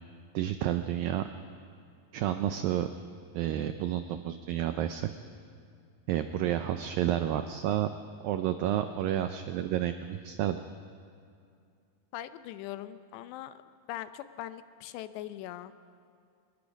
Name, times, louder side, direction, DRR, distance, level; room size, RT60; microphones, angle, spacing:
voice 1, 0.3-1.2 2.1-2.9 3.3-5.1 6.1-7.9 8.2-10.6, right 11 dB, 85° right, 9 dB, 2.0 m, -30 dB
voice 2, 12.1-13.6 13.9-15.7, left 13 dB, 85° left, 12 dB, 2.9 m, -41 dB
25.0 x 21.0 x 5.3 m, 2.4 s
omnidirectional pair, 4.9 m